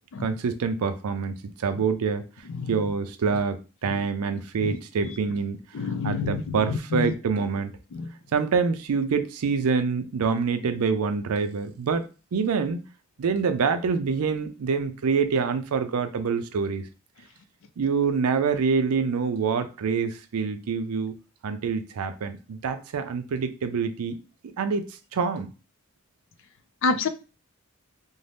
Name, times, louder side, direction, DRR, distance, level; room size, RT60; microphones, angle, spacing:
voice 1, 0.2-2.2 2.7-5.6 6.0-7.7 8.3-12.8 13.2-16.8 17.8-21.1 21.4-24.2 24.6-25.5, right 5 dB, 85° right, 0.4 m, -26 dB
voice 2, 2.5-2.9 3.9-4.0 4.6-4.8 5.0-5.1 5.7-7.1 7.4-7.5 7.9-8.1 26.8-27.1, left 4 dB, 60° left, 0.4 m, -28 dB
2.6 x 2.1 x 3.2 m
head